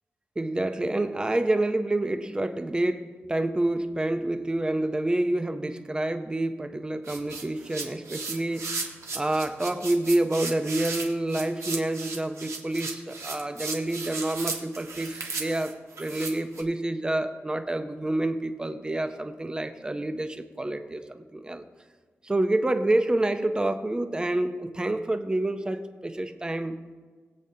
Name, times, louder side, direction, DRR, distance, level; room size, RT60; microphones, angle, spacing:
voice 1, 0.4-8.8 9.1-21.6 22.2-26.9, right 1 dB, 15° right, 8 dB, 0.7 m, -28 dB
sound 1, 7.0-16.6, right 4 dB, 75° right, 1.6 m, -35 dB
20.5 x 8.3 x 2.8 m, 1.5 s
wide cardioid pair, 135°, 5 cm